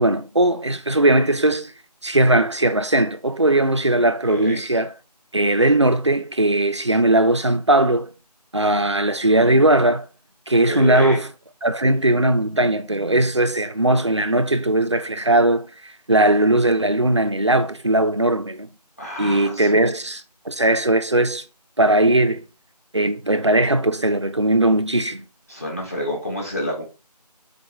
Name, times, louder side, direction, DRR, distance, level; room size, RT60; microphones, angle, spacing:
voice 1, 0.0-1.7 2.0-4.9 5.3-8.1 8.5-10.1 10.5-11.3 11.6-18.7 19.2-20.2 20.5-21.4 21.8-22.5 22.9-25.2, right 1 dB, 45° right, 0.4 m, -19 dB
voice 2, 4.2-4.6 10.6-11.2 19.0-19.8 25.5-26.8, left 1 dB, 20° left, 1.3 m, -29 dB
3.9 x 3.4 x 3.0 m
figure-of-eight pair, 175°, 21 cm